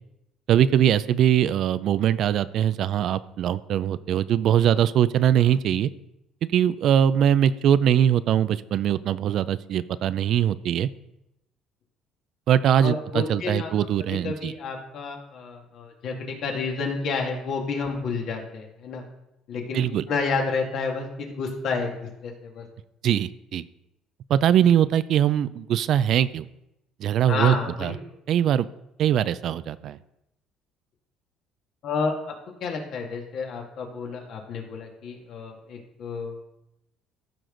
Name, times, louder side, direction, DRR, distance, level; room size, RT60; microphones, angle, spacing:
voice 1, 0.5-5.9 6.5-10.9 12.5-14.5 19.7-20.0 23.0-23.6 24.3-26.4 27.0-27.9 28.3-28.7 29.0-30.0, right 10 dB, 60° right, 15 dB, 0.4 m, -21 dB
voice 2, 12.8-13.7 14.2-19.0 19.5-22.6 27.3-28.0 31.8-32.2 32.6-36.3, left 4 dB, 60° left, 1 dB, 2.1 m, -30 dB
14.5 x 6.1 x 3.9 m, 0.85 s
cardioid pair, 115°, 0 cm